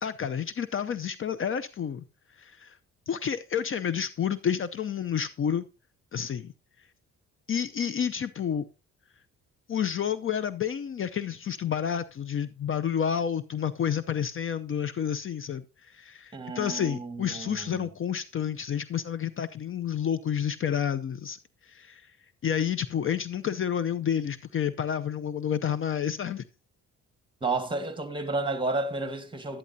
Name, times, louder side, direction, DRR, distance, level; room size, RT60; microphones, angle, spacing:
voice 1, 0.0-2.0 2.4-2.8 3.1-5.7 6.1-6.5 7.5-8.7 9.7-21.4 21.6-22.0 22.4-26.4, left 8 dB, 45° left, 0.6 m, -30 dB
voice 2, 16.3-17.9 27.4-29.6, right 3 dB, 15° right, 1.7 m, -31 dB
11.5 x 11.0 x 2.7 m
cardioid pair, 90°, 30 cm